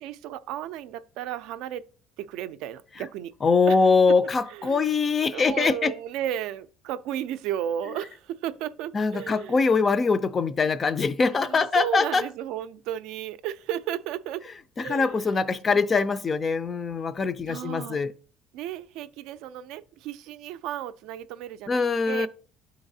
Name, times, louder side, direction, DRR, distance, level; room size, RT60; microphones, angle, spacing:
voice 1, 0.0-1.9 2.2-3.3 3.7-3.8 4.5-4.9 5.3-9.6 11.3-14.5 14.8-15.4 15.7-15.8 17.5-18.0 18.5-22.3, right 11 dB, 75° right, 0.3 m, -34 dB
voice 2, 3.4-5.9 8.9-12.2 14.8-18.1 21.7-22.3, left 4 dB, 25° left, 0.3 m, -23 dB
11.5 x 3.9 x 2.7 m
cardioid pair, 150°, 0 cm